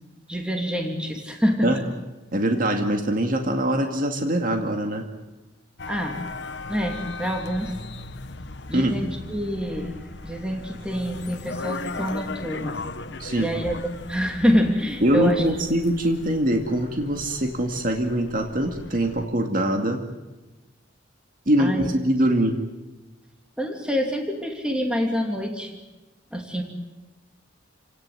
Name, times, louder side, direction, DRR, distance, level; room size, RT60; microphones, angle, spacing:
voice 1, 0.3-1.9 5.9-6.2 6.7-7.8 8.7-12.8 13.4-13.8 14.1-15.5 21.6-21.9 23.6-25.8 26.3-26.6, equal, 5° right, 2 dB, 2.8 m, -26 dB
voice 2, 2.3-5.0 8.7-9.0 13.2-13.5 15.0-20.0 21.5-22.6, right 1 dB, 50° right, 4 dB, 2.3 m, -23 dB
sound 1, 5.8-19.3, left 3 dB, 65° left, 1.3 m, -38 dB
29.5 x 17.5 x 9.6 m, 1.1 s
head